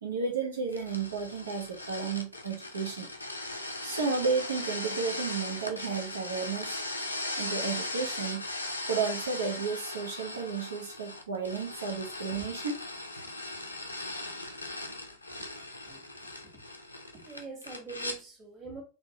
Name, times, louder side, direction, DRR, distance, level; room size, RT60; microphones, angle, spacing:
voice 1, 0.0-3.1 3.8-6.8 7.4-8.4 8.9-12.8, right 5 dB, 65° right, 0.6 m, -32 dB
sound 1, 0.7-18.2, left 2 dB, 85° left, 0.5 m, -38 dB
voice 2, 15.9-16.6 17.1-18.8, right 4 dB, 25° right, 1.4 m, -45 dB
3.3 x 2.7 x 2.8 m
figure-of-eight pair, 90°, 0 cm